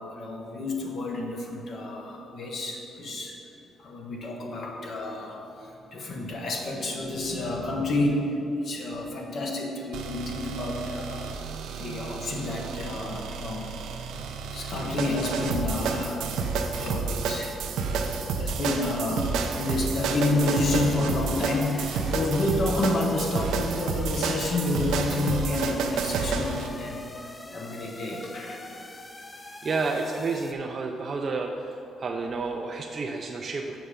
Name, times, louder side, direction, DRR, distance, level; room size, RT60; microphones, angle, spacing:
voice 1, 0.0-3.4 3.8-11.3 11.7-13.7 14.5-28.6, left 2 dB, 55° left, 0 dB, 1.3 m, -30 dB
sound 1, 9.9-26.7, right 5 dB, 85° right, 0.6 m, -30 dB
sound 2, 20.1-30.5, left 2 dB, 20° left, 0.5 m, -43 dB
voice 2, 29.6-31.5 32.0-33.8, right 4 dB, 45° right, 1 dB, 0.5 m, -30 dB
6.8 x 5.7 x 5.0 m, 2.9 s
cardioid pair, 90°, 0 cm